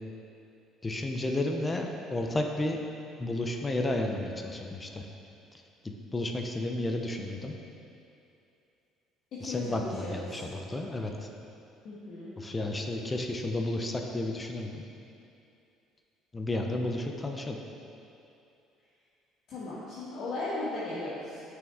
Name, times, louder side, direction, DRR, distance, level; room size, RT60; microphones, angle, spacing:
voice 1, 0.8-2.8 3.2-5.0 6.1-7.5 9.4-11.3 12.4-14.8 16.3-17.6, left 1 dB, 15° left, 3 dB, 0.5 m, -32 dB
voice 2, 9.4-10.4 11.8-12.3 19.5-21.4, left 2 dB, 50° left, -9 dB, 1.3 m, -36 dB
9.1 x 6.2 x 3.5 m, 2.7 s
cardioid pair, 170°, 0 cm